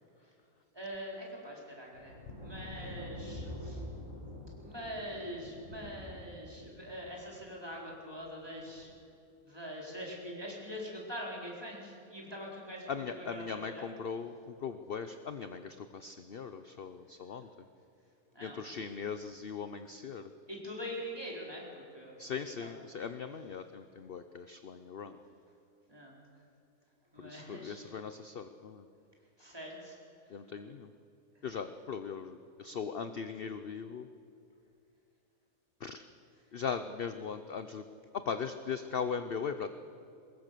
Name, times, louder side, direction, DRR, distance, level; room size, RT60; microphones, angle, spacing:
voice 1, 0.7-3.8 4.6-8.9 9.4-13.9 18.3-18.9 20.5-22.1 22.6-22.8 25.9-26.1 27.1-27.8 29.4-30.0, equal, 15° right, -3 dB, 4.4 m, -43 dB
sound 1, 1.9-7.4 8.6-8.9, left 1 dB, 50° right, 5.4 m, -46 dB
voice 2, 12.9-17.5 18.4-20.3 22.2-25.2 27.2-28.8 30.3-30.9 31.4-34.1 35.8-36.0 36.5-37.8 38.1-39.7, left 6 dB, 45° left, 9 dB, 0.8 m, -39 dB
23.5 x 20.5 x 6.8 m, 2.6 s
omnidirectional pair, 1.7 m